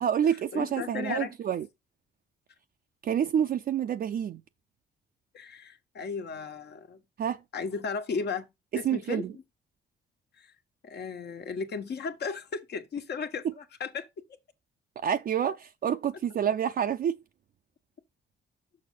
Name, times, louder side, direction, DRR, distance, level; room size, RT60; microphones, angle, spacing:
voice 1, 0.0-1.7 3.0-4.4 7.2-7.4 8.8-9.3 13.4-13.5 15.0-17.2, right 9 dB, 50° right, 0.5 m, -28 dB
voice 2, 0.5-1.3 5.3-7.0 7.5-8.5 8.7-9.3 10.4-10.5 10.8-14.1, left 5 dB, 55° left, 1.3 m, -35 dB
6.4 x 6.3 x 3.8 m
cardioid pair, 90°, 20 cm